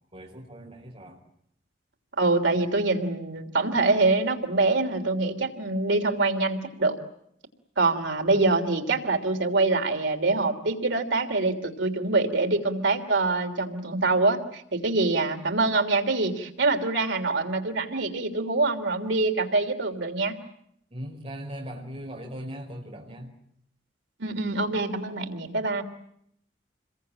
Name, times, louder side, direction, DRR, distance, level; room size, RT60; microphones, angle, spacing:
voice 1, 0.1-1.2 20.9-23.3, equal, 35° right, 0 dB, 5.1 m, -39 dB
voice 2, 2.2-7.0 7.8-20.3 24.2-25.8, right 3 dB, 85° right, 5 dB, 3.2 m, -25 dB
28.0 x 22.0 x 8.8 m, 0.75 s
head